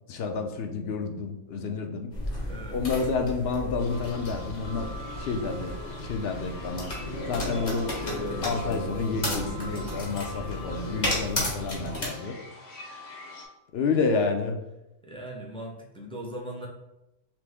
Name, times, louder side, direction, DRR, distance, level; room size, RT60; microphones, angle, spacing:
voice 1, 0.1-2.1 2.7-4.9 5.2-5.8 6.0-6.9 7.3-7.9 8.4-12.4 13.7-14.6, left 4 dB, 65° left, 4 dB, 0.8 m, -29 dB
sound 1, 2.1-12.1, left 1 dB, 40° left, 1.3 m, -33 dB
voice 2, 2.5-2.9 15.0-16.7, right 1 dB, 10° left, -1 dB, 0.3 m, -39 dB
sound 2, 3.8-13.4, left 1 dB, 80° left, 1.1 m, -44 dB
5.9 x 2.0 x 3.4 m, 0.91 s
omnidirectional pair, 1.2 m